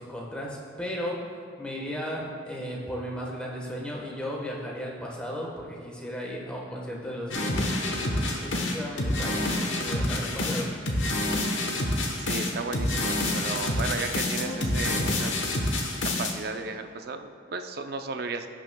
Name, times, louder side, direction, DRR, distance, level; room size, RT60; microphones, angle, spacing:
voice 1, 0.0-7.6 7.9-10.8 13.1-13.6, equal, 5° left, -3 dB, 1.2 m, -36 dB
sound 1, 7.3-16.3, left 1 dB, 80° left, 1.1 m, -27 dB
voice 2, 12.2-15.4 16.0-18.5, right 4 dB, 55° right, 7 dB, 0.5 m, -34 dB
16.5 x 6.1 x 2.2 m, 2.3 s
head